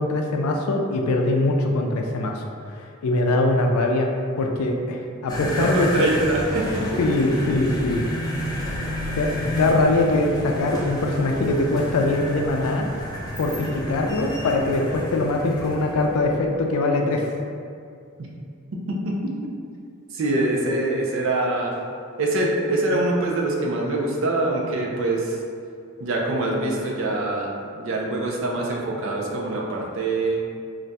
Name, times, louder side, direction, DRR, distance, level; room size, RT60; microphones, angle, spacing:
voice 1, 0.0-2.4 2.7-4.1 4.4-6.1 7.0-8.0 9.1-12.9 13.4-17.3, left 2 dB, 85° left, 2 dB, 0.4 m, -22 dB
sound 1, 5.3-16.6, equal, 20° left, 0.5 m, -31 dB
voice 2, 5.5-7.0 18.9-19.3 20.1-21.7 22.2-25.4 26.0-30.4, right 2 dB, 65° right, -2 dB, 0.5 m, -24 dB
2.5 x 2.2 x 4.0 m, 2.3 s
head